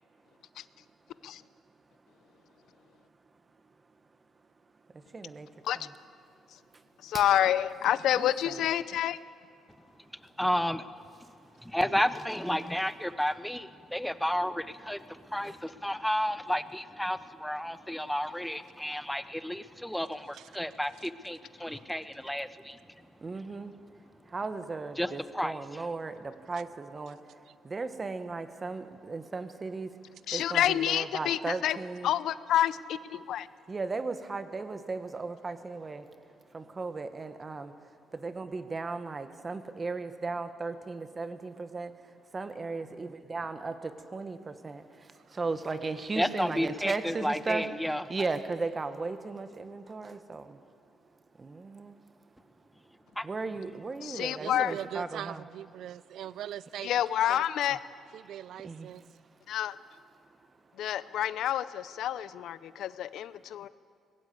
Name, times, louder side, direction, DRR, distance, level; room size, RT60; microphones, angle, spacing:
voice 1, 5.1-5.5 5.8-5.9 7.1-7.2 8.1-8.7 15.4-15.5 23.2-23.7 24.3-27.2 27.6-29.9 30.3-32.1 33.7-36.0 36.5-37.7 38.1-41.9 42.3-44.8 45.3-50.6 51.4-51.9 53.2-55.5 57.7-57.8 58.6-58.9, right 3 dB, 30° right, 10 dB, 1.4 m, -36 dB
voice 2, 7.0-9.2 30.3-31.8 32.0-33.5 54.0-54.7 56.8-57.8 59.5-59.8 60.8-63.7, left 11 dB, 80° left, 17 dB, 0.6 m, -28 dB
voice 3, 10.4-10.8 11.6-22.8 25.0-25.6 46.2-48.0 53.2-53.3, equal, 5° left, 14 dB, 0.8 m, -32 dB
voice 4, 54.4-57.4 58.1-59.0, right 11 dB, 75° right, 18 dB, 0.4 m, -41 dB
20.0 x 16.5 x 8.3 m, 2.3 s
cardioid pair, 90°, 0 cm